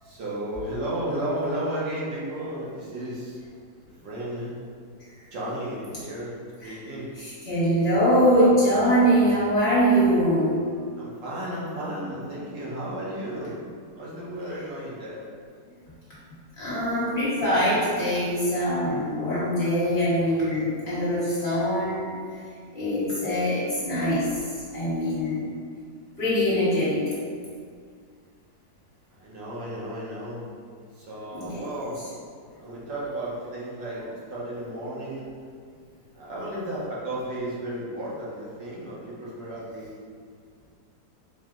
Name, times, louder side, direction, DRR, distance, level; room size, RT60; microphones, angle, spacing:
voice 1, 0.0-3.4 4.0-4.5 5.3-6.3 6.6-7.1 8.3-8.5 11.0-13.5 13.9-15.2 29.1-30.4 31.0-32.0 32.6-34.0 34.3-35.3 36.1-39.9, right 1 dB, 80° right, -7 dB, 1.7 m, -33 dB
voice 2, 7.2-10.6 16.6-22.2 22.7-24.4 24.7-25.5 26.2-27.1 31.3-31.6, equal, 40° left, -10 dB, 1.3 m, -23 dB
4.6 x 2.1 x 3.6 m, 2.1 s
omnidirectional pair, 1.9 m